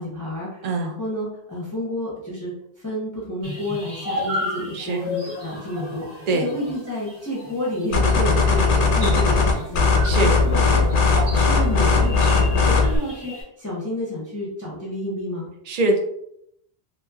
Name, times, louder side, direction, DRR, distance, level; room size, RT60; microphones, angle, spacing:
voice 1, 0.0-10.9 11.3-15.5, left 1 dB, 20° left, -6 dB, 0.6 m, -30 dB
voice 2, 0.6-1.0 4.7-5.1 6.3-6.5 10.0-10.4 15.7-16.0, right 2 dB, 50° right, 3 dB, 0.5 m, -23 dB
sound 1, 3.4-13.4, left 1 dB, 75° right, 1.2 m, -34 dB
sound 2, 7.9-13.0, left 4 dB, 60° left, 0.7 m, -18 dB
2.9 x 2.8 x 2.3 m, 0.74 s
omnidirectional pair, 1.1 m